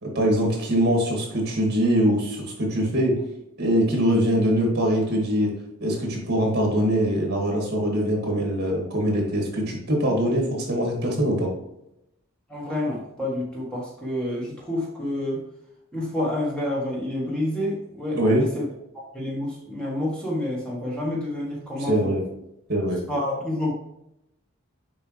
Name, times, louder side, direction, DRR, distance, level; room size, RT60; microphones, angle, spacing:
voice 1, 0.0-3.2 3.6-5.5 5.8-11.5 18.2-18.4 21.8-22.2 22.7-23.0, equal, 50° right, 0 dB, 2.2 m, -23 dB
voice 2, 12.5-15.4 15.9-18.6 19.1-22.1 23.1-23.7, left 1 dB, 5° left, -5 dB, 1.4 m, -28 dB
6.9 x 5.2 x 3.2 m, 0.83 s
head